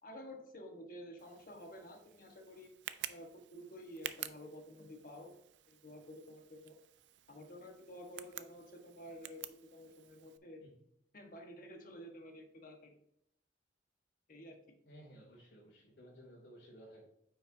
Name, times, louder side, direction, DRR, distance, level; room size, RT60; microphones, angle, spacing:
voice 1, 0.0-2.7 3.1-5.4 5.7-6.8 7.3-10.6 11.1-13.0 14.3-14.7, equal, 50° left, 3 dB, 1.2 m, -51 dB
Tick, 1.2-10.4, right 12 dB, 75° right, 0.4 m, -50 dB
voice 2, 14.9-17.1, equal, 85° left, -5 dB, 2.6 m, -56 dB
9.2 x 5.5 x 2.6 m, 0.76 s
head